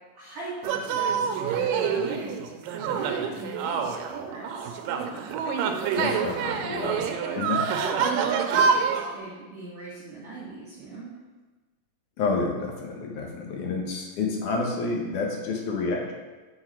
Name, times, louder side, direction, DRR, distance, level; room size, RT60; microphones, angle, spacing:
voice 1, 0.1-2.3 2.7-4.8 5.9-6.2 7.3-7.4 7.7-11.1, right 3 dB, 50° right, -9 dB, 2.7 m, -39 dB
sound 1, 0.6-9.1, right 6 dB, 90° right, 2.3 m, -27 dB
voice 2, 5.9-7.1 7.4-7.6 12.2-16.1, left 4 dB, 70° left, 0 dB, 2.6 m, -29 dB
9.1 x 4.7 x 4.5 m, 1.3 s
omnidirectional pair, 3.9 m